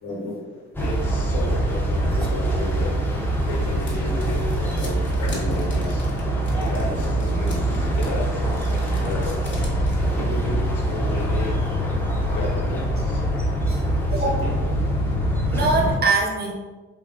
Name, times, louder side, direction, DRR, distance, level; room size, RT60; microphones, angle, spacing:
voice 1, 0.0-3.1 3.4-6.1 6.5-9.7 10.1-11.6 12.3-13.2 14.1-14.6, left 1 dB, 70° left, -3 dB, 1.0 m, -33 dB
sound 1, 0.7-16.0, right 1 dB, 5° left, 0.5 m, -23 dB
sound 2, 2.9-10.2, left 1 dB, 40° left, 0.9 m, -39 dB
voice 2, 13.4-13.8 14.1-14.3 15.5-16.5, right 3 dB, 35° right, -1 dB, 0.7 m, -24 dB
3.4 x 2.6 x 2.4 m, 1.3 s
cardioid pair, 90°, 30 cm